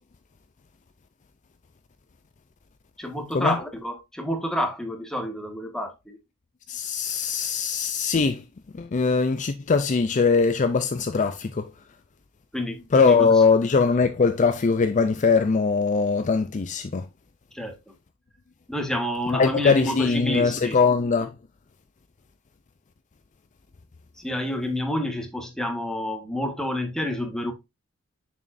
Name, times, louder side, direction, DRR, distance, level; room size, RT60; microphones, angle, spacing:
voice 1, 3.0-6.2 12.5-13.3 17.5-17.9 18.7-20.8 24.2-27.5, left 1 dB, 5° left, 1.5 m, -29 dB
voice 2, 6.7-8.4 8.7-11.7 12.9-17.1 19.3-21.3, left 4 dB, 35° left, 0.4 m, -21 dB
7.2 x 6.2 x 2.6 m
head